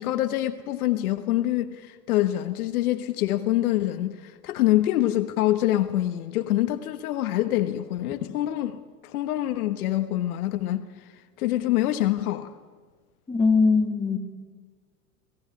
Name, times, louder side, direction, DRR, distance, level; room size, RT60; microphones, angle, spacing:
voice 1, 0.0-10.9 11.4-12.5, left 14 dB, 65° left, 1.3 m, -25 dB
voice 2, 13.3-14.2, left 4 dB, 10° left, 2.6 m, -21 dB
23.5 x 17.0 x 9.8 m
hypercardioid pair, 95°, 47 cm